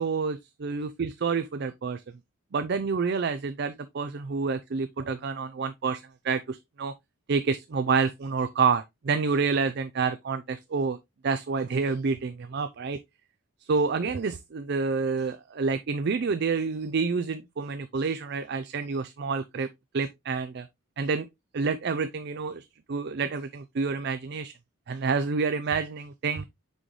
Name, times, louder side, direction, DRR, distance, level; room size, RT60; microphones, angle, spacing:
voice 1, 0.0-2.0 2.5-6.9 7.3-11.0 11.2-13.0 13.7-19.7 19.9-20.7 21.0-21.3 21.5-24.5 24.9-26.5, right 4 dB, 50° right, 0.4 m, -28 dB
6.2 x 5.2 x 3.1 m
head